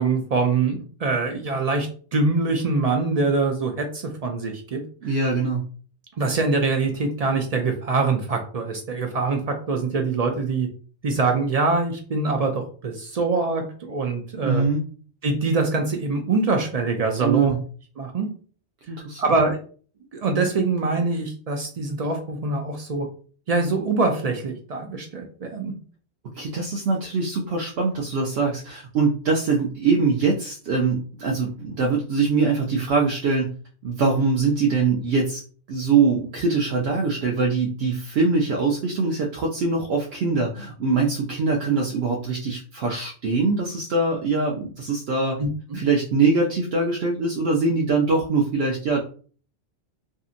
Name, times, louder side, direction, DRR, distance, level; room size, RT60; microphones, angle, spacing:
voice 1, 0.0-5.1 6.2-10.7 11.0-14.6 15.2-17.5 18.0-18.3 19.2-19.6 20.1-23.1 23.5-25.7 45.4-45.8, right 3 dB, 55° right, 3 dB, 0.4 m, -24 dB
voice 2, 5.0-5.7 14.4-14.8 17.2-17.6 18.9-19.2 26.3-33.5 33.8-35.4 35.7-45.4 45.7-49.0, right 4 dB, 70° right, 0 dB, 0.8 m, -23 dB
2.7 x 2.6 x 2.4 m, 0.42 s
omnidirectional pair, 1.1 m